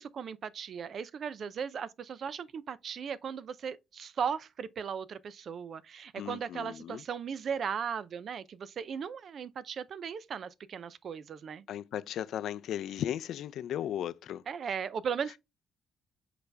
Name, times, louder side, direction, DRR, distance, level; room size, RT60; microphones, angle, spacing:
voice 1, 0.0-11.6 14.5-15.4, right 7 dB, 55° right, 0.5 m, -37 dB
voice 2, 6.2-7.0 11.7-14.4, left 10 dB, 75° left, 0.4 m, -36 dB
6.7 x 4.1 x 3.4 m
cardioid pair, 90°, 0 cm